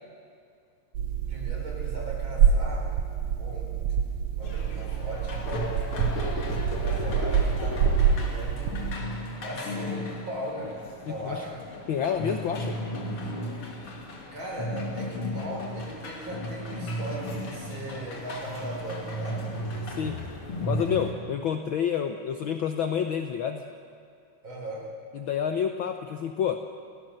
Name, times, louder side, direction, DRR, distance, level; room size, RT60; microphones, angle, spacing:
sound 1, 0.9-9.0, right 7 dB, 70° right, 2.3 m, -26 dB
voice 1, 1.3-2.9 3.4-3.8 4.3-5.8 6.8-8.9 9.4-11.7 14.3-19.5 24.4-24.9, equal, 40° right, -2 dB, 5.4 m, -38 dB
sound 2, 4.4-21.1, left 1 dB, 50° left, 3.1 m, -35 dB
voice 2, 11.1-11.4 11.9-12.8 19.9-20.2 20.7-23.6 25.2-26.6, left 8 dB, 75° left, 6 dB, 1.1 m, -28 dB
29.0 x 16.5 x 6.5 m, 2.3 s
omnidirectional pair, 3.4 m